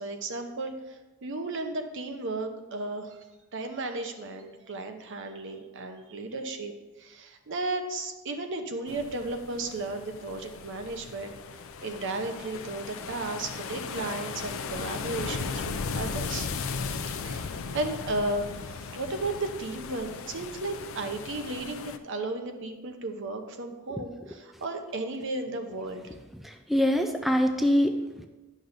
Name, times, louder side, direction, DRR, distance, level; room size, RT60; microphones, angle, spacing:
voice 1, 0.0-3.2 3.5-6.7 7.0-11.3 11.8-15.6 16.0-16.5 17.1-26.1, right 2 dB, 60° right, 5 dB, 0.8 m, -34 dB
sound 1, 8.9-22.0, left 5 dB, 70° left, 0.5 m, -37 dB
voice 2, 26.3-28.3, equal, ahead, 5 dB, 0.4 m, -25 dB
10.5 x 6.1 x 2.6 m, 1.2 s
head